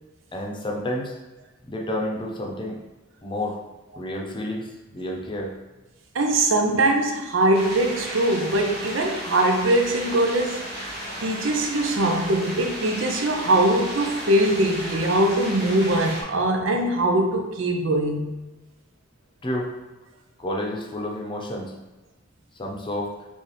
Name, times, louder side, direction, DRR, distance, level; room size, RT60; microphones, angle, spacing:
voice 1, 0.3-1.2 1.7-2.8 3.2-3.6 4.0-5.5 19.4-19.7 20.4-21.7 22.5-23.1, left 1 dB, 25° left, -1 dB, 0.7 m, -30 dB
voice 2, 6.1-10.6 11.2-18.4, right 1 dB, 90° right, 3 dB, 0.6 m, -22 dB
sound 1, 7.5-16.2, equal, 55° right, 0.9 m, -34 dB
4.1 x 3.4 x 3.3 m, 1.1 s
head